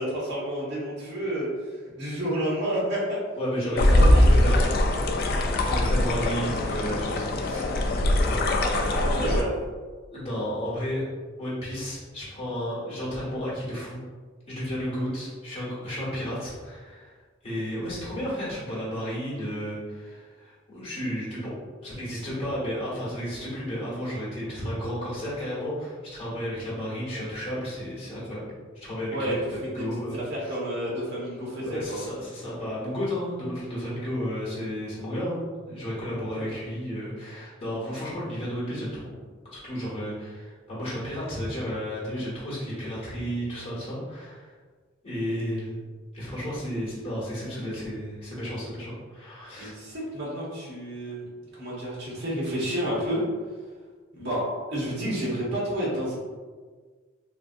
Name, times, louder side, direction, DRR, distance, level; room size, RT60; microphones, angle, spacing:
voice 1, 0.0-1.5 1.9-3.2 3.7-4.4 8.9-9.5 29.1-32.0 36.3-36.5 49.5-51.2 51.5-53.2 54.1-54.4 54.7-56.1, equal, 60° right, -6 dB, 1.3 m, -30 dB
voice 2, 3.3-4.8 5.6-7.7 8.3-9.3 10.1-11.0 11.4-14.0 14.5-17.1 17.4-21.5 21.8-28.4 28.7-29.3 29.7-30.2 31.6-39.0 39.5-44.4 45.0-45.8 46.1-49.7, equal, 30° left, -9 dB, 1.4 m, -32 dB
sound 1, 3.8-9.4, left 1 dB, 55° left, 0.4 m, -22 dB
3.3 x 2.6 x 2.5 m, 1.5 s
head